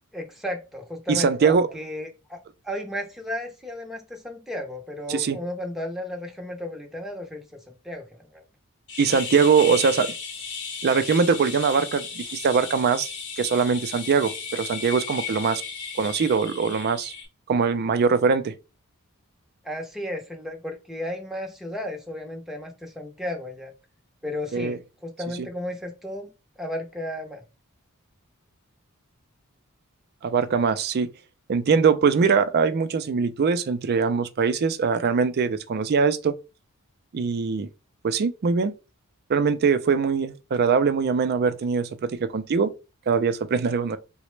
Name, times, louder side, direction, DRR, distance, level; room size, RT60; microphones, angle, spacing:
voice 1, 0.1-2.4 2.6-7.4 7.8-8.4 19.6-23.7 24.2-26.3 26.6-27.4, left 1 dB, ahead, 0.6 m, -34 dB
voice 2, 1.1-1.7 5.1-5.4 9.0-10.1 10.8-13.1 13.4-15.6 16.0-17.1 17.5-18.5 24.5-24.8 25.4-25.5 30.2-31.1 31.5-36.3 37.1-37.7 38.0-38.7 39.3-42.7 43.1-44.0, right 5 dB, 45° right, 0.4 m, -22 dB
sound 1, 8.9-17.2, left 5 dB, 60° left, 0.8 m, -35 dB
3.9 x 2.1 x 3.1 m
head